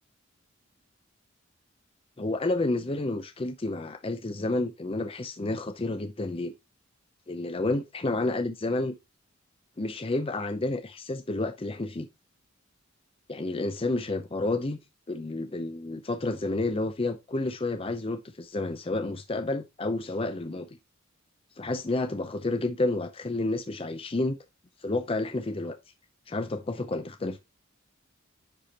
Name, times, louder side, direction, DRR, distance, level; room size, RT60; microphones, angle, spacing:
voice 1, 2.2-6.5 7.3-8.9 9.8-12.1 13.3-14.8 15.1-20.7 21.6-24.4 24.8-25.8 26.3-27.4, left 2 dB, 25° left, 0.6 m, -30 dB
10.0 x 4.3 x 3.0 m
head